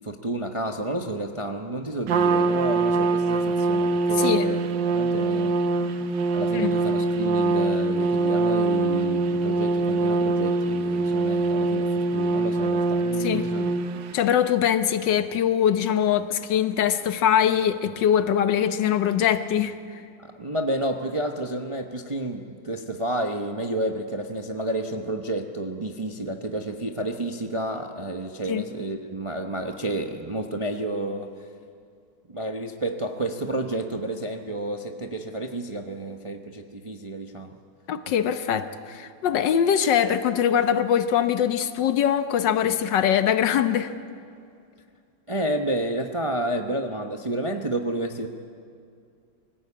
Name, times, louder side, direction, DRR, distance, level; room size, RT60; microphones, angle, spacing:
voice 1, 0.0-5.6 6.3-13.7 20.2-31.3 32.3-37.6 45.3-48.3, right 1 dB, 30° right, 4 dB, 0.6 m, -30 dB
Trumpet, 2.1-14.2, right 3 dB, 70° right, 1.5 m, -23 dB
voice 2, 14.1-19.7 28.5-28.6 37.9-43.9, left 9 dB, 70° left, 10 dB, 1.6 m, -22 dB
24.0 x 15.5 x 8.6 m, 2.4 s
omnidirectional pair, 2.1 m